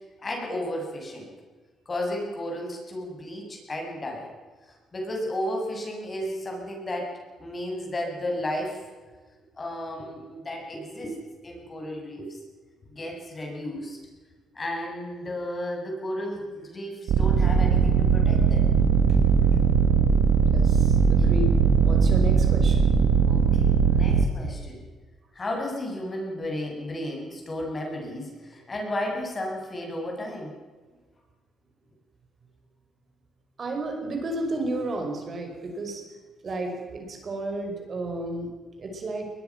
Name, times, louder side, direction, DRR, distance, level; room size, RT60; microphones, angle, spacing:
voice 1, 0.2-1.3 1.9-4.3 4.7-7.1 7.4-8.8 9.6-11.2 11.4-12.4 12.9-14.0 14.5-18.7 23.3-24.8 25.3-30.5, left 1 dB, 30° left, 1 dB, 7.3 m, -33 dB
sound 1, 17.1-24.3, right 6 dB, 75° right, 1.9 m, -20 dB
voice 2, 20.5-21.5 21.8-22.9 33.6-36.0 36.4-38.5 38.8-39.3, right 2 dB, 45° right, 3 dB, 5.4 m, -32 dB
21.5 x 21.5 x 6.1 m, 1.4 s
cardioid pair, 90°, 0 cm